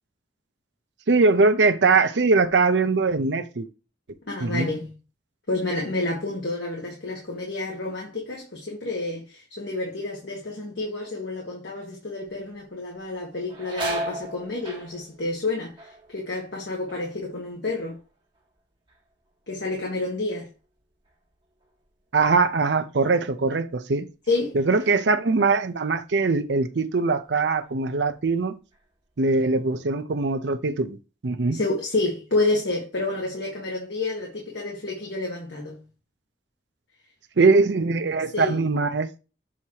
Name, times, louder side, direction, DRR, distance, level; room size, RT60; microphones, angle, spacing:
voice 1, 1.1-3.7 4.4-4.7 22.1-24.1 24.5-28.5 29.2-31.0 31.2-31.6 37.4-39.1, right 3 dB, 70° right, 0.6 m, -21 dB
voice 2, 4.3-4.9 5.5-15.7 16.1-18.0 19.5-20.5 24.3-24.5 31.5-35.8 38.3-38.7, left 2 dB, 75° left, 1.6 m, -29 dB
sound 1, 12.3-12.6 13.0-18.6 18.9-19.5 20.0-22.9 23.2-23.3 24.3-24.5 25.0-26.1 26.5-26.7 27.3-27.9 28.2-29.4, right 1 dB, 25° right, 1.5 m, -38 dB
7.1 x 2.9 x 4.6 m
head